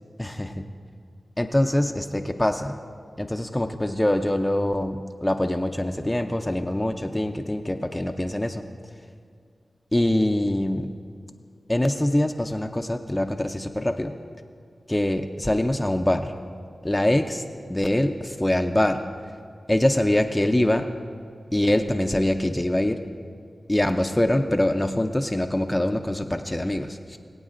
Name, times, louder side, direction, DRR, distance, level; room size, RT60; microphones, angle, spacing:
voice 1, 0.2-0.7 1.4-2.8 3.2-8.6 9.9-10.9 11.7-14.1 14.9-16.3 16.8-17.4 17.7-19.0 19.7-20.9 21.5-23.0 23.7-27.2, left 1 dB, 15° left, 6 dB, 0.5 m, -24 dB
21.0 x 8.7 x 2.5 m, 2.3 s
cardioid pair, 45°, 0 cm